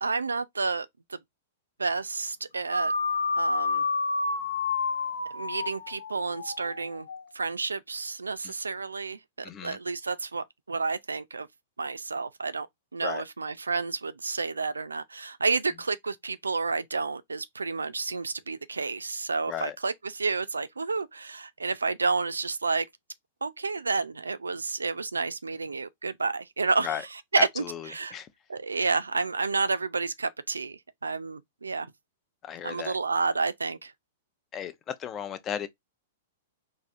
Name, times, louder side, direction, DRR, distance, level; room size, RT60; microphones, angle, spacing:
voice 1, 0.0-1.2 1.8-2.9 3.4-3.8 5.3-7.1 7.3-11.5 11.8-12.7 12.9-22.9 23.4-26.9 27.3-27.6 27.9-28.2 28.5-31.9 32.6-33.9, right 4 dB, 80° right, 0.4 m, -30 dB
sound 1, 2.7-7.2, left 4 dB, 75° left, 0.7 m, -29 dB
voice 2, 9.4-9.8 13.0-13.2 19.5-19.8 26.8-27.0 27.4-28.3 32.4-33.0 34.5-35.7, left 9 dB, 25° left, 0.5 m, -35 dB
4.0 x 2.6 x 2.5 m
figure-of-eight pair, 105°, 0 cm